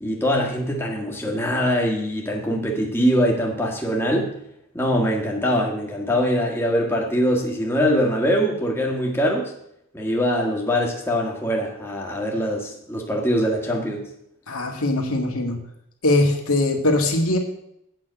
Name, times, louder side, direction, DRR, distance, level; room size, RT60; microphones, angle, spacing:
voice 1, 0.0-4.3 4.7-9.5 9.9-14.1, equal, 10° left, -1 dB, 1.5 m, -23 dB
voice 2, 14.5-15.6 16.0-17.4, left 2 dB, 75° left, 3 dB, 2.0 m, -21 dB
8.5 x 6.1 x 8.3 m, 0.76 s
head